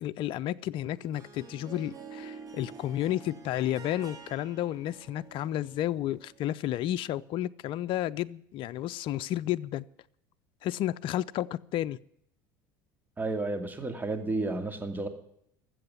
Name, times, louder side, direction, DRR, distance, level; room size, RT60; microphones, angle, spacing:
voice 1, 0.0-9.8 10.6-12.0, left 13 dB, 50° left, 0.5 m, -32 dB
Harp, 0.8-6.6, right 5 dB, 30° right, 3.3 m, -48 dB
voice 2, 13.2-15.1, right 2 dB, 15° right, 2.4 m, -32 dB
13.5 x 7.7 x 9.6 m
hypercardioid pair, 85°, 11 cm